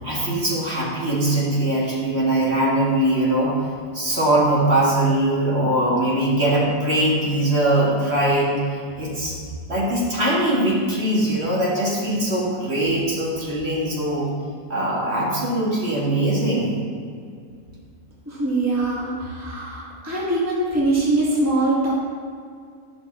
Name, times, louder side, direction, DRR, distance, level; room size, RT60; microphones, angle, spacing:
voice 1, 0.0-9.4 9.7-14.3 14.7-16.8, right 1 dB, 50° right, -5 dB, 2.1 m, -21 dB
voice 2, 18.3-21.9, right 2 dB, 10° right, -5 dB, 1.5 m, -22 dB
11.0 x 5.9 x 4.2 m, 2.2 s
omnidirectional pair, 1.4 m